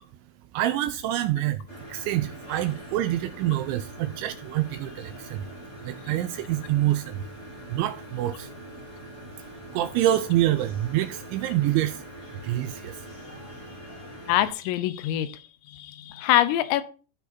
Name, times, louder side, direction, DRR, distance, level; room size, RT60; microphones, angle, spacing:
voice 1, 0.5-5.5 5.8-7.3 7.7-8.5 9.7-12.0 12.4-13.1, right 13 dB, 80° right, 2.7 m, -26 dB
sound 1, 1.7-14.5, equal, 15° left, 2.8 m, -43 dB
voice 2, 14.3-15.4 15.7-16.8, left 13 dB, 85° left, 3.5 m, -24 dB
15.0 x 6.2 x 2.7 m
omnidirectional pair, 5.9 m